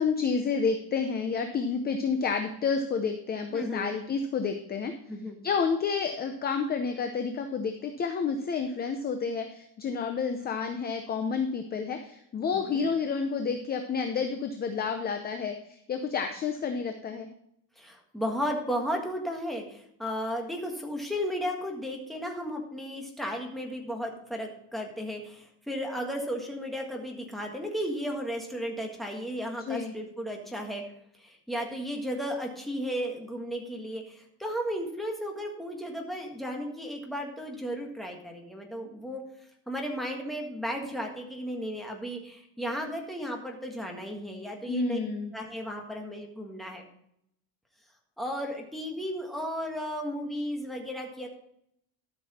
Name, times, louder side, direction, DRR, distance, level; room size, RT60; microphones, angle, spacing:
voice 1, 0.0-4.9 5.4-17.3 29.7-29.9 44.7-45.3, left 5 dB, 20° left, 6 dB, 0.6 m, -30 dB
voice 2, 3.5-3.9 5.1-5.4 12.5-12.9 17.8-30.8 31.2-39.2 39.7-45.0 45.3-46.8 48.2-51.3, equal, ahead, 1 dB, 1.6 m, -34 dB
13.0 x 6.3 x 4.2 m, 0.74 s
cardioid pair, 165°, 46 cm